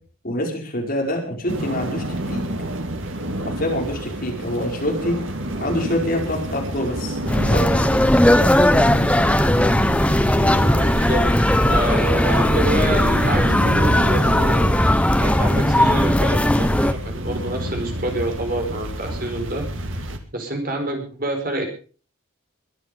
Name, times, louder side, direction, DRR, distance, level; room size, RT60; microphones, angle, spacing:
voice 1, 0.2-2.4 3.6-5.2 5.6-7.2 7.4-7.8, left 1 dB, 40° left, 1 dB, 5.1 m, -25 dB
sound 1, 1.5-20.2, right 1 dB, 60° right, 2.4 m, -30 dB
sound 2, 7.3-16.9, left 1 dB, 5° left, 0.7 m, -17 dB
voice 2, 10.9-11.3 11.6-14.7 15.2-19.7 20.3-21.7, right 1 dB, 40° right, 4 dB, 4.7 m, -27 dB
22.0 x 11.0 x 5.4 m, 0.40 s
head